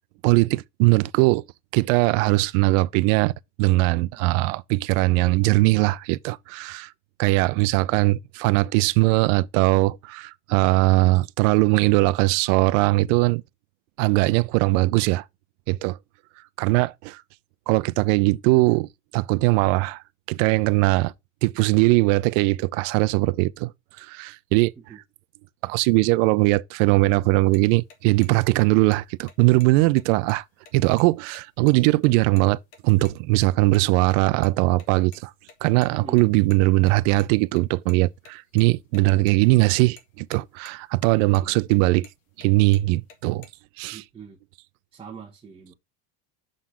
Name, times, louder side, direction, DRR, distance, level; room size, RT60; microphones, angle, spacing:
voice 1, 0.2-1.4 1.7-3.3 3.6-6.9 7.2-13.4 14.0-15.2 15.7-16.0 16.6-17.2 17.7-18.9 19.1-20.0 20.3-21.1 21.4-23.7 24.0-24.7 25.6-30.4 30.7-35.3 35.6-42.1 42.4-43.5 43.8-44.0, right 21 dB, 70° right, 0.6 m, -20 dB
sound 1, 27.5-27.6 27.9-28.0 28.2-28.3 28.6-29.0 29.3-29.4 29.6-29.7 30.0-31.0 31.3-31.4 31.7-31.8 32.0-32.4 32.7-33.1 33.4-34.5 34.7-37.3 37.6-39.3 39.6-39.7 40.0-40.4 40.6-41.1 41.3-42.5 42.7-43.5, left 6 dB, 90° left, 2.0 m, -49 dB
voice 2, 35.9-36.5 41.0-41.6 43.9-44.4 44.9-45.7, right 6 dB, 15° right, 0.9 m, -42 dB
6.3 x 3.8 x 5.6 m
cardioid pair, 165°, 39 cm